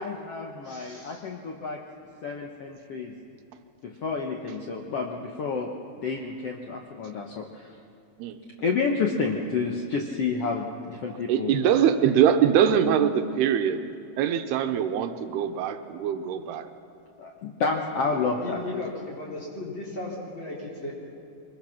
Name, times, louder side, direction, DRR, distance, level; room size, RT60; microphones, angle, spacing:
voice 1, 0.0-1.8 2.2-3.1 3.8-5.7 6.0-7.7 8.6-11.8 17.2-18.6, left 4 dB, 80° left, 2 dB, 1.3 m, -30 dB
voice 2, 0.6-1.3 18.0-18.1 18.4-20.9, left 2 dB, 30° left, -4 dB, 4.6 m, -36 dB
voice 3, 11.3-13.8 14.2-16.7, right 9 dB, 85° right, 8 dB, 3.0 m, -23 dB
24.0 x 21.0 x 5.9 m, 2.8 s
omnidirectional pair, 4.6 m